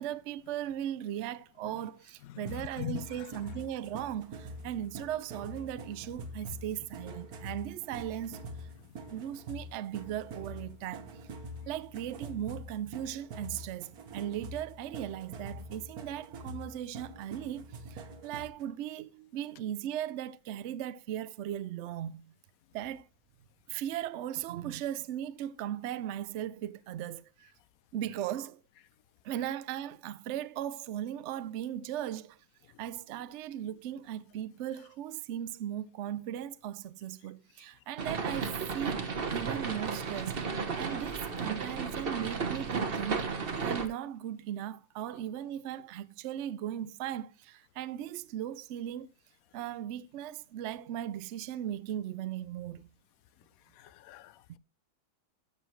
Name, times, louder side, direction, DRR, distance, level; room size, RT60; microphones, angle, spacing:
voice 1, 0.0-8.4 9.1-11.1 11.7-22.2 22.7-23.0 23.7-27.5 27.9-28.6 29.2-32.4 32.8-40.4 40.8-43.3 43.6-49.1 49.5-52.9, right 11 dB, 90° right, 0.6 m, -38 dB
voice 2, 2.3-3.0 53.8-54.6, left 12 dB, 65° left, 0.9 m, -41 dB
sound 1, 2.4-18.6, right 1 dB, 60° right, 1.6 m, -45 dB
sound 2, 38.0-43.9, right 5 dB, 35° right, 1.2 m, -34 dB
13.0 x 7.0 x 3.1 m
omnidirectional pair, 1.9 m